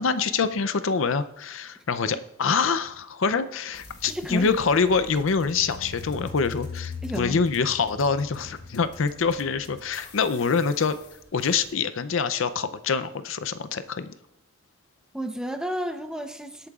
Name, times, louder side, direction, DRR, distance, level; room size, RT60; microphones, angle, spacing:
voice 1, 0.0-11.0 11.3-14.1, left 5 dB, 70° left, 12 dB, 0.5 m, -25 dB
sound 1, 3.7-11.7, left 4 dB, 55° left, 1.4 m, -42 dB
voice 2, 4.1-4.6 7.0-7.4 15.1-16.7, equal, 5° right, 6 dB, 0.7 m, -31 dB
22.0 x 8.6 x 2.4 m, 0.87 s
head